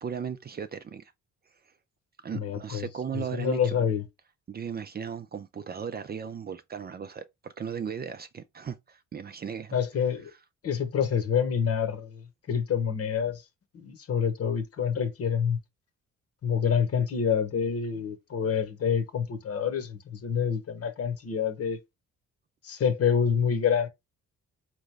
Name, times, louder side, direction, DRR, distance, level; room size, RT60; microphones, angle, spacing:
voice 1, 0.0-1.1 2.2-3.6 4.5-9.8, right 7 dB, 30° right, 0.5 m, -36 dB
voice 2, 2.3-2.9 3.1-4.0 9.7-10.3 10.6-13.4 13.7-15.6 16.4-21.8 22.6-23.9, left 7 dB, 50° left, 1.1 m, -27 dB
3.8 x 3.1 x 3.4 m
cardioid pair, 90°, 30 cm